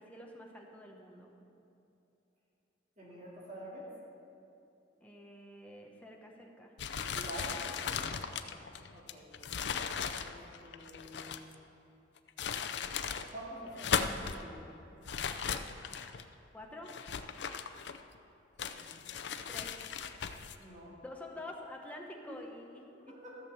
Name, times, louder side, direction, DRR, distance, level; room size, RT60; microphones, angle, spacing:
voice 1, 0.0-1.3 5.0-6.7 7.9-8.1 16.5-16.9 19.5-20.0 21.0-23.1, left 1 dB, 10° left, 0 dB, 1.1 m, -48 dB
voice 2, 3.0-3.9 7.1-7.6 8.9-9.3 10.2-11.5 13.3-14.8 18.7-19.0 20.6-21.0 22.9-23.3, right 1 dB, 40° right, -6 dB, 2.3 m, -47 dB
sound 1, 6.8-11.5 12.2-13.3 13.7-14.4 15.0-16.2 16.9-18.2 18.6-20.6, left 7 dB, 65° left, 0.5 m, -37 dB
14.0 x 6.7 x 7.2 m, 2.7 s
head